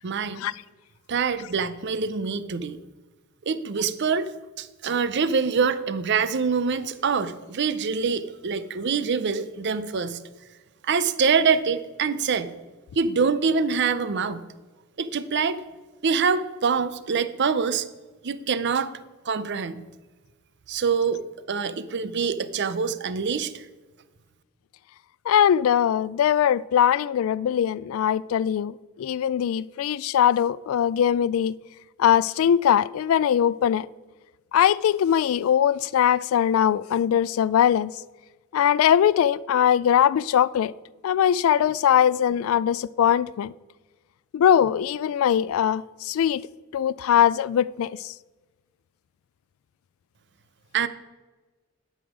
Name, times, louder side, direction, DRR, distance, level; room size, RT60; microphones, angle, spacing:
voice 1, 0.0-0.5 1.1-2.8 3.5-4.3 4.6-10.2 10.8-12.5 13.0-14.4 15.0-15.6 16.0-17.9 18.2-18.9 19.3-19.8 20.7-21.2 21.5-23.6 50.7-50.9, right 5 dB, 55° right, 0.6 m, -25 dB
voice 2, 25.3-31.5 32.0-33.9 34.5-38.0 38.5-40.7 41.0-43.5 44.3-46.4 46.7-48.1, left 9 dB, 75° left, 0.3 m, -21 dB
11.5 x 6.3 x 5.0 m
head